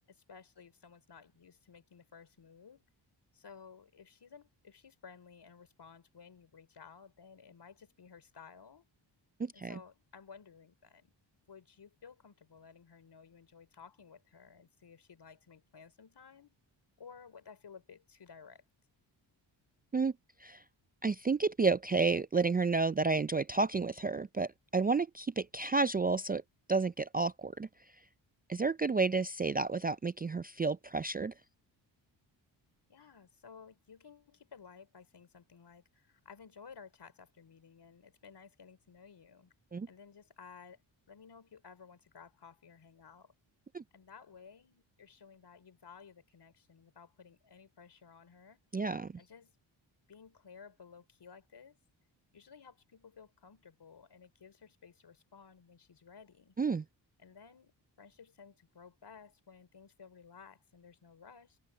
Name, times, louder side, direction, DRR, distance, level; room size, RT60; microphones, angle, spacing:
voice 1, 0.1-2.8 3.3-8.8 9.5-11.1 11.5-16.5 17.0-18.7 32.9-39.5 39.9-40.8 41.1-43.3 43.9-48.6 49.2-49.6 50.1-51.8 52.3-56.6 57.2-57.7 58.0-61.6, left 6 dB, 60° left, 4.3 m, -55 dB
voice 2, 9.4-9.8 19.9-20.1 20.4-20.6 21.0-26.4 26.7-27.7 28.5-31.3 39.7-39.9 43.7-43.8 48.7-49.1 56.6-56.8, right 4 dB, 20° right, 0.4 m, -31 dB
cardioid pair, 65°, 47 cm